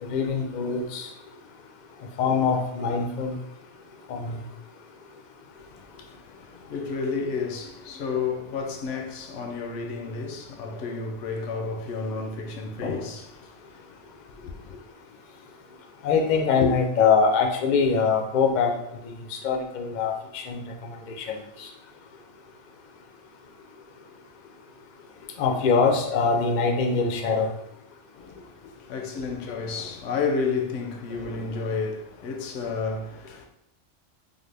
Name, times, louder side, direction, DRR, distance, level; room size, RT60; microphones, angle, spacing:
voice 1, 0.0-1.1 2.2-3.4 4.1-4.4 16.0-18.7 19.0-21.7 25.4-27.5, left 5 dB, 60° left, 0.4 m, -23 dB
voice 2, 5.6-13.8 14.4-14.8 28.2-28.5 28.9-33.5, left 4 dB, 80° left, 0.9 m, -31 dB
3.5 x 2.0 x 3.2 m
omnidirectional pair, 1.2 m